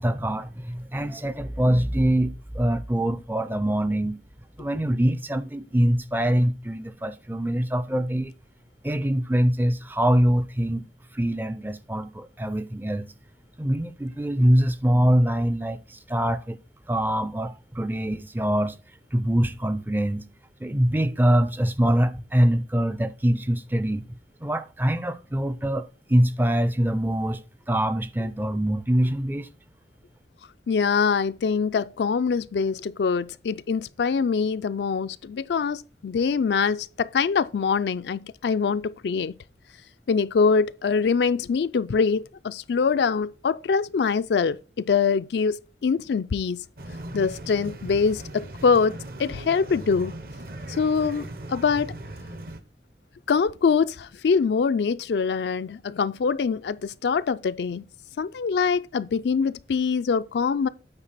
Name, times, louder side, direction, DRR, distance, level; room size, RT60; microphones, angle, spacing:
voice 1, 0.0-4.2 4.6-8.3 8.8-10.8 11.1-13.1 13.6-16.6 16.9-18.8 19.1-20.3 20.6-24.1 24.4-29.5, right 1 dB, 10° right, 0.4 m, -24 dB
voice 2, 30.7-39.3 40.1-46.6 47.1-50.1 50.7-51.9 53.3-57.8 58.2-60.7, left 5 dB, 75° left, 0.4 m, -24 dB
sound 1, 46.8-52.6, right 1 dB, 55° right, 0.8 m, -38 dB
8.8 x 4.5 x 4.1 m
head